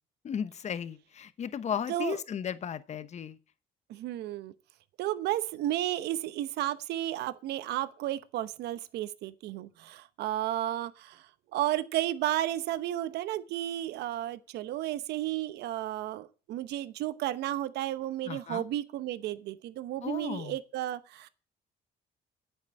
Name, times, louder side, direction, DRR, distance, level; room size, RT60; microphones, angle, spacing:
voice 1, 0.2-3.4 18.2-18.6 20.0-20.6, left 8 dB, 45° left, 1.0 m, -35 dB
voice 2, 3.9-4.5 5.0-11.3 11.5-21.3, right 13 dB, 80° right, 0.9 m, -33 dB
9.5 x 8.2 x 7.5 m
cardioid pair, 110°, 17 cm